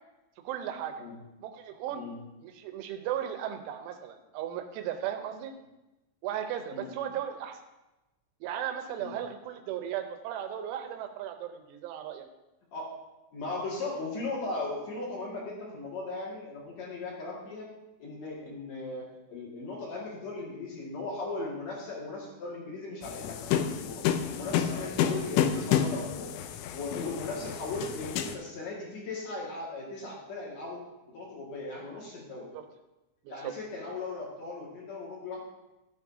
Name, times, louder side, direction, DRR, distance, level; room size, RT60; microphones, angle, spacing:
voice 1, 0.4-1.0 1.4-2.0 2.4-5.5 6.2-7.6 8.4-12.3 32.5-32.6 33.2-33.5, right 10 dB, 80° right, 6 dB, 3.2 m, -36 dB
voice 2, 13.3-17.7 18.0-24.0 24.3-26.3 26.7-32.5 33.3-35.4, left 3 dB, 50° left, -4 dB, 2.5 m, -38 dB
sound 1, 23.0-28.3, left 9 dB, 90° left, 3.2 m, -30 dB
15.0 x 7.4 x 2.8 m, 1.0 s
omnidirectional pair, 5.6 m